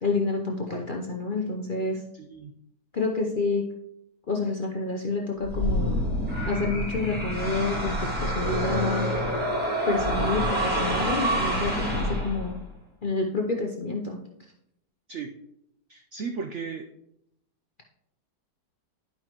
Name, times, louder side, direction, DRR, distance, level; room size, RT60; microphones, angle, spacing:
voice 1, 0.0-2.0 2.9-3.6 4.3-6.0 6.5-9.1 9.9-12.6 13.0-14.2, left 3 dB, 45° left, -1 dB, 0.6 m, -28 dB
voice 2, 2.1-2.5 15.1-15.3 15.9-16.9, right 5 dB, 75° right, 6 dB, 0.6 m, -35 dB
sound 1, 5.4-12.7, equal, 5° right, 1.6 m, -27 dB
10.5 x 5.6 x 3.0 m, 0.79 s
omnidirectional pair, 1.8 m